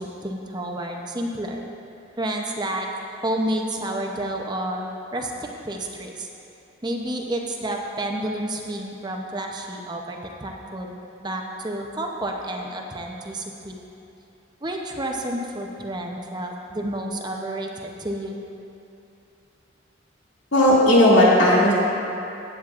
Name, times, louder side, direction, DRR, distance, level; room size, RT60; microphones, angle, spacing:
voice 1, 0.0-1.6 2.2-6.3 6.8-10.9 11.2-13.7 14.6-18.4, right 1 dB, 20° right, 1 dB, 0.6 m, -30 dB
voice 2, 20.5-21.7, left 1 dB, 80° left, -7 dB, 2.3 m, -15 dB
15.0 x 8.8 x 2.4 m, 2.8 s
head